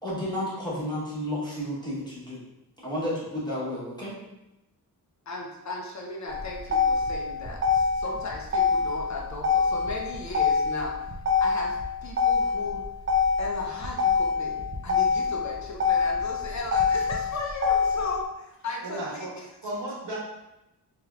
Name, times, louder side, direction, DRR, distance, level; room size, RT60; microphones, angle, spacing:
voice 1, 0.0-2.4 2.8-4.1, left 1 dB, 10° left, -8 dB, 0.9 m, -31 dB
voice 2, 5.3-10.9 11.4-12.8 13.4-14.6 14.8-19.3, left 2 dB, 45° left, -1 dB, 0.5 m, -36 dB
Motor vehicle (road), 6.3-18.3, left 5 dB, 30° right, 0.4 m, -25 dB
voice 3, 18.8-19.3 19.6-20.2, right 1 dB, 80° right, -6 dB, 1.4 m, -34 dB
3.3 x 2.8 x 2.3 m, 0.92 s
wide cardioid pair, 165°, 40 cm